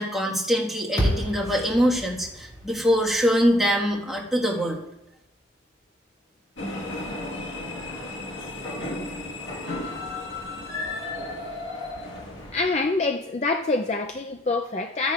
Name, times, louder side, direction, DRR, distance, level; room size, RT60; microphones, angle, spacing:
voice 1, 0.0-4.8, equal, ahead, -4 dB, 1.5 m, -23 dB
sound 1, 1.0-5.3, equal, 20° left, 3.0 m, -32 dB
sound 2, 6.6-12.9, left 2 dB, 75° left, 1.5 m, -34 dB
voice 2, 12.5-15.1, left 3 dB, 35° left, 4 dB, 0.4 m, -25 dB
14.5 x 10.0 x 2.4 m, 0.88 s
head